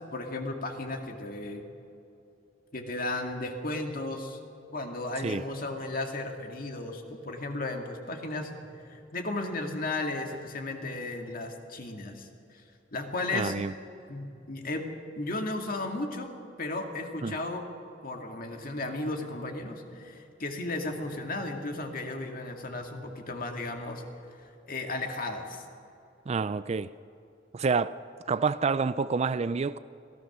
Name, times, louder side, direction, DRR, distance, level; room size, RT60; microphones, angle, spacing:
voice 1, 0.1-1.6 2.7-4.4 4.7-12.6 12.9-13.5 14.1-14.9 15.2-16.3 16.6-17.6 18.0-24.0 24.4-25.6, left 2 dB, 50° left, 2.2 m, -35 dB
voice 2, 13.3-13.7 17.2-17.4 26.3-26.9 27.5-27.9 28.3-29.8, right 4 dB, 35° right, 0.4 m, -28 dB
26.0 x 16.5 x 6.1 m
head